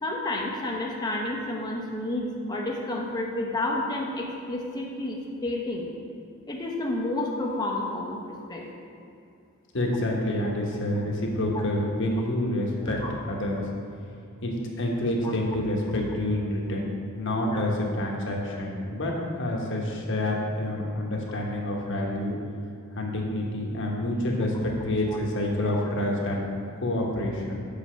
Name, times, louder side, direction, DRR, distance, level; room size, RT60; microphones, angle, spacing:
voice 1, 0.0-5.9 6.5-8.2 8.5-8.6 12.8-13.1 15.2-15.3 25.1-25.2, left 1 dB, 20° left, -1 dB, 0.9 m, -30 dB
voice 2, 9.7-13.0 13.3-13.7 14.4-22.3 23.0-26.5 26.8-27.7, left 1 dB, 55° left, -1 dB, 1.2 m, -28 dB
6.9 x 5.1 x 5.7 m, 2.5 s
head